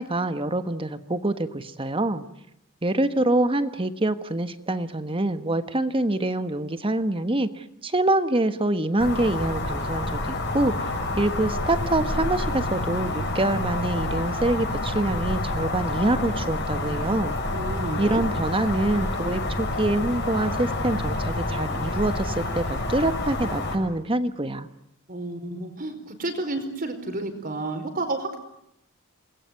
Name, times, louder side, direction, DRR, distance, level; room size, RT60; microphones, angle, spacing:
voice 1, 0.0-2.2 2.8-10.9 11.2-17.4 18.0-24.7, right 1 dB, 25° right, 11 dB, 1.4 m, -25 dB
sound 1, 9.0-23.8, left 2 dB, 55° left, 6.6 m, -28 dB
voice 2, 17.5-18.2 25.1-28.4, right 2 dB, 45° right, 8 dB, 4.7 m, -31 dB
28.5 x 21.0 x 9.6 m, 0.80 s
head